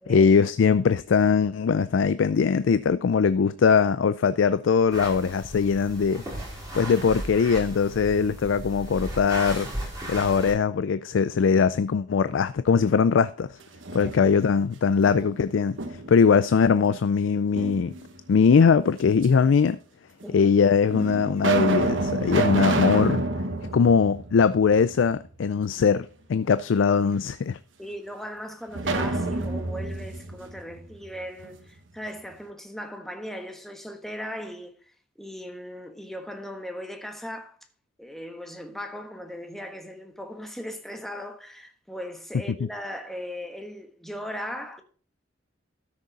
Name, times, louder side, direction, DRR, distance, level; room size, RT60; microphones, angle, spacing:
voice 1, 0.1-6.2 6.7-9.7 10.1-13.6 13.9-17.9 18.3-19.8 20.3-23.2 23.7-27.6, left 6 dB, 85° left, 0.4 m, -21 dB
sound 1, 4.9-10.5, right 1 dB, 20° right, 5.4 m, -36 dB
sound 2, 13.6-14.6 15.0-16.3 17.5-18.3 19.2-19.3 20.2-20.3 20.9-25.0 25.3-25.4 28.7-31.5, right 2 dB, 90° right, 1.2 m, -28 dB
voice 2, 27.8-34.7 35.2-37.6 38.0-44.8, equal, ahead, 1.3 m, -38 dB
13.0 x 6.5 x 4.1 m
head